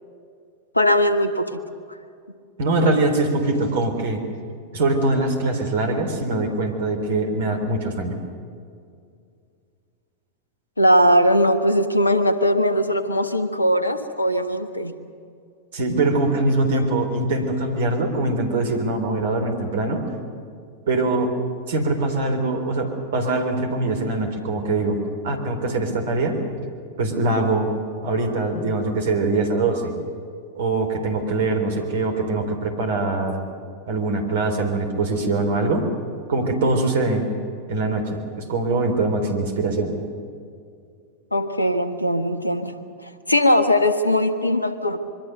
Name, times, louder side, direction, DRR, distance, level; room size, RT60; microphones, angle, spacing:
voice 1, 0.7-1.5 10.8-14.9 41.3-42.7 43.3-45.0, equal, 85° left, 10 dB, 1.4 m, -19 dB
voice 2, 2.6-4.2 4.7-8.2 15.7-20.1 20.9-21.3 21.7-26.4 27.0-27.7 28.0-30.0 30.6-33.4 33.9-35.9 36.3-37.3 37.7-39.9, right 2 dB, 55° right, 5 dB, 3.7 m, -23 dB
26.0 x 23.0 x 6.8 m, 2.3 s
figure-of-eight pair, 90°, 0 cm